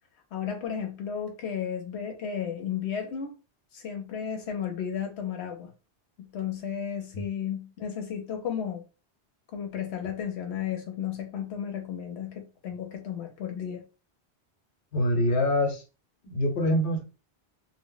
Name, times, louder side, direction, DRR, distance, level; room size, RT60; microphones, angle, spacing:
voice 1, 0.3-3.4 3.7-5.7 6.2-8.8 9.5-13.8, left 8 dB, 85° left, 0.9 m, -33 dB
voice 2, 14.9-15.8 16.2-17.0, left 1 dB, 60° left, 1.0 m, -25 dB
2.1 x 2.1 x 3.7 m
omnidirectional pair, 1.1 m